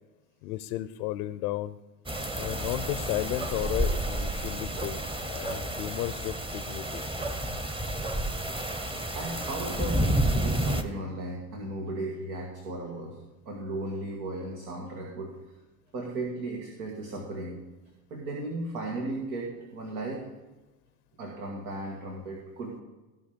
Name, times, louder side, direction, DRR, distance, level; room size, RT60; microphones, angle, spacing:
voice 1, 0.4-1.8 2.4-7.0, left 15 dB, 85° left, 13 dB, 0.6 m, -34 dB
sound 1, 2.1-10.8, right 1 dB, 10° right, 0.9 m, -30 dB
voice 2, 9.1-13.2 13.5-15.4 15.9-17.6 18.1-20.3 21.2-22.8, right 2 dB, 90° right, -1 dB, 1.8 m, -36 dB
15.5 x 5.6 x 5.1 m, 1.1 s
supercardioid pair, 95°, 43 cm